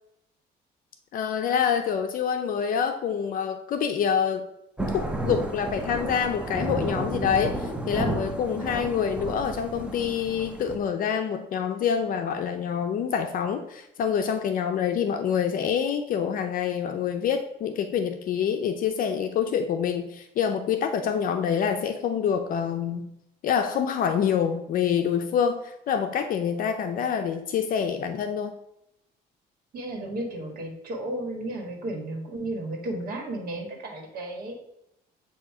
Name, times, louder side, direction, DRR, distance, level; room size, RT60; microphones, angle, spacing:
voice 1, 1.1-4.5 4.9-23.1 23.4-28.5, left 7 dB, 55° left, 7 dB, 0.5 m, -26 dB
Thunder / Rain, 4.8-10.8, right 1 dB, 5° right, 0.7 m, -32 dB
voice 2, 29.7-34.5, right 1 dB, 60° right, 1 dB, 1.7 m, -33 dB
7.7 x 2.8 x 4.7 m, 0.83 s
cardioid pair, 110°, 17 cm